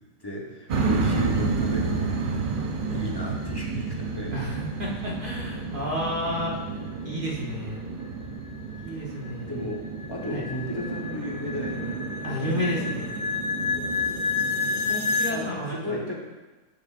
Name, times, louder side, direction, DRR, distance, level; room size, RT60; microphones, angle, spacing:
voice 1, 0.2-2.2 2.9-4.5 8.9-9.0 9.4-9.8 10.1-11.9 13.7-14.3 15.2-16.2, left 1 dB, 20° left, -2 dB, 0.6 m, -34 dB
sound 1, 0.7-15.5, right 4 dB, 80° right, 0.4 m, -31 dB
voice 2, 4.3-6.6 7.0-7.8 8.8-9.5 10.3-10.4 12.2-13.1 14.9-16.0, equal, 35° right, -4 dB, 1.1 m, -31 dB
sound 2, 8.2-15.4, left 4 dB, 65° left, 0.6 m, -30 dB
12.5 x 5.1 x 2.5 m, 1.2 s
omnidirectional pair, 1.8 m